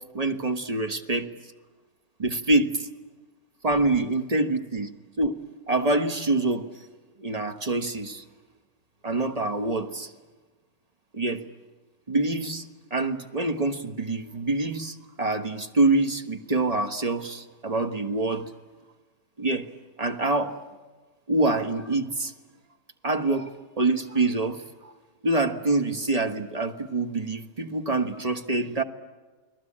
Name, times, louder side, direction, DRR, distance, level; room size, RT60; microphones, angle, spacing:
voice 1, 0.1-1.3 2.2-2.9 3.6-4.9 5.2-5.3 5.7-6.6 7.2-8.2 9.0-10.1 11.1-11.4 12.1-12.7 12.9-18.5 19.4-19.7 20.0-20.6 21.3-22.3 23.0-24.9 25.2-28.8, right 2 dB, 25° right, 7 dB, 1.4 m, -26 dB
29.5 x 21.0 x 8.7 m, 1.3 s
omnidirectional pair, 1.6 m